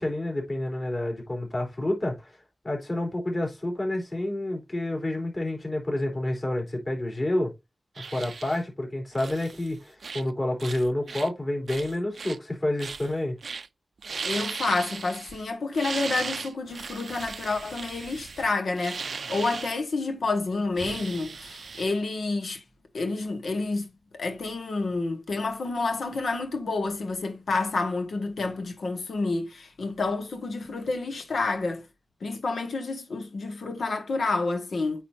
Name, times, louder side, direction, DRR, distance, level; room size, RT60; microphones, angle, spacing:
voice 1, 0.0-2.3 2.6-7.5 8.0-13.4, left 1 dB, 35° left, 3.8 m, -29 dB
sound 1, 7.9-8.6 9.1-9.7 10.0-10.3 10.6-11.3 11.7-12.4 12.8-13.1 13.4-13.7 14.0-15.4 15.7-19.7 20.8-21.8, right 5 dB, 75° right, 0.4 m, -37 dB
voice 2, 14.2-22.6 22.9-23.9 24.2-31.8 32.2-35.0, left 3 dB, 90° left, 1.6 m, -29 dB
9.1 x 4.2 x 2.7 m
wide cardioid pair, 115°, 0 cm